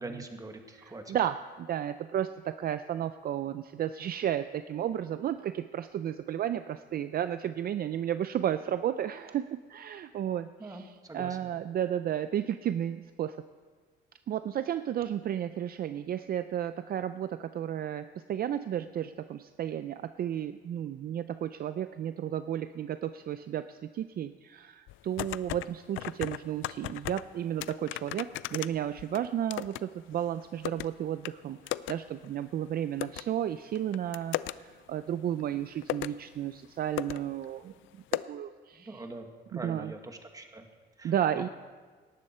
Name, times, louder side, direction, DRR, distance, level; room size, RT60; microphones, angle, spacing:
voice 1, 0.0-1.2 10.6-11.4 38.7-40.7 41.0-41.5, right 2 dB, 20° right, 5 dB, 1.6 m, -43 dB
voice 2, 1.1-10.8 11.1-13.4 14.3-37.7 38.3-38.9 39.5-39.9 41.0-41.5, right 10 dB, 50° right, 12 dB, 0.5 m, -33 dB
sound 1, 24.9-25.7 26.0-27.2 27.6-29.8 30.1-30.9 31.2-31.3 31.7-31.9 32.2-32.3 33.0-33.2 33.7-34.5 35.4-35.5 35.8-36.2 36.6-36.7 37.0-37.2 37.4-37.5 38.1-38.2, left 16 dB, 90° left, 0.4 m, -35 dB
18.0 x 12.0 x 4.4 m, 1.5 s
cardioid pair, 110°, 20 cm